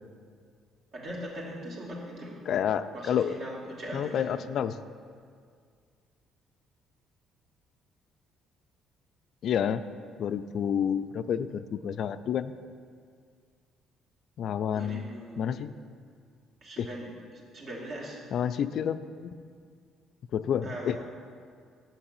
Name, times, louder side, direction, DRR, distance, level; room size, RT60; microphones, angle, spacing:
voice 1, 0.9-2.4 2.9-4.4 14.7-15.6 16.6-18.2 20.6-21.0, right 1 dB, 55° right, -3 dB, 2.4 m, -40 dB
voice 2, 2.5-3.4 3.9-4.8 9.4-9.8 10.2-12.5 14.4-15.1 15.4-15.7 16.8-16.9 18.3-19.3 20.3-21.0, left 8 dB, 65° left, 12 dB, 0.3 m, -29 dB
7.4 x 6.1 x 6.6 m, 2.1 s
hypercardioid pair, 60°, 0 cm